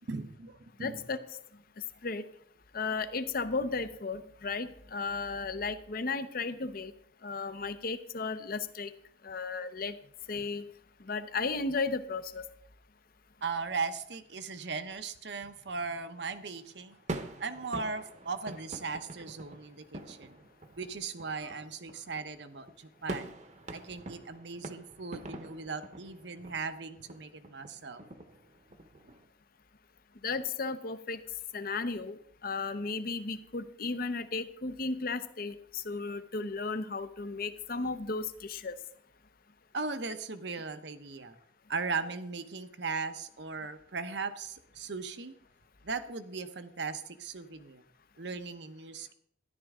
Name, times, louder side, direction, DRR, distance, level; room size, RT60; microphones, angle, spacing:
voice 1, 0.1-1.1 13.4-17.0 17.4-20.4 20.8-23.3 23.7-28.0 39.7-41.4 41.7-45.3 45.8-47.8 48.2-49.1, right 4 dB, 70° right, 10 dB, 0.9 m, -38 dB
voice 2, 0.8-1.2 2.0-2.2 2.7-6.9 7.2-8.9 9.2-10.0 10.3-10.6 11.0-12.4 30.2-31.2 31.5-38.8, left 4 dB, 55° left, 12 dB, 0.8 m, -34 dB
sound 1, 15.9-29.2, right 2 dB, 40° right, 1.0 m, -45 dB
13.0 x 11.0 x 3.7 m, 0.67 s
head